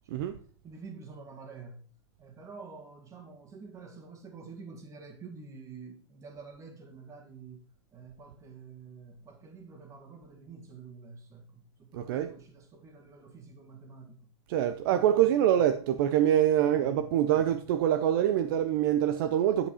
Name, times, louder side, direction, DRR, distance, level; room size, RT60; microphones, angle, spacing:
voice 1, 0.6-1.8 2.2-7.7 7.9-14.3 14.9-15.7 16.6-17.5, right 4 dB, 20° right, 2.0 m, -48 dB
voice 2, 11.9-12.4 14.5-19.7, right 11 dB, 50° right, 0.6 m, -25 dB
10.0 x 5.3 x 4.9 m
hypercardioid pair, 140°, 15 cm